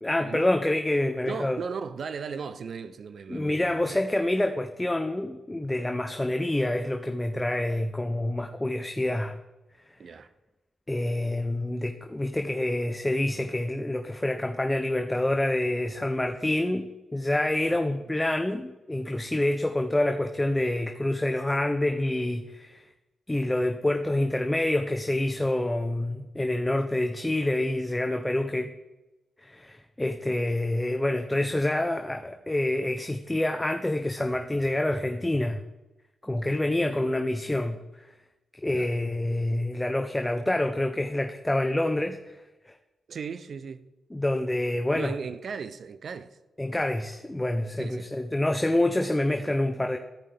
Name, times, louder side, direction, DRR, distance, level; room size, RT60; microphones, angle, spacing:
voice 1, 0.0-1.6 3.3-9.4 10.9-16.8 17.1-22.9 23.3-28.7 29.4-35.6 36.2-38.1 38.6-42.4 42.7-42.8 44.1-45.1 46.6-50.0, left 1 dB, 15° left, 0.6 m, -27 dB
voice 2, 1.3-4.0 10.0-10.3 17.9-18.1 38.7-38.9 43.1-43.9 44.9-46.4 47.8-48.1, right 6 dB, 65° right, 0.5 m, -37 dB
14.5 x 5.3 x 3.4 m
supercardioid pair, 55°, 0 cm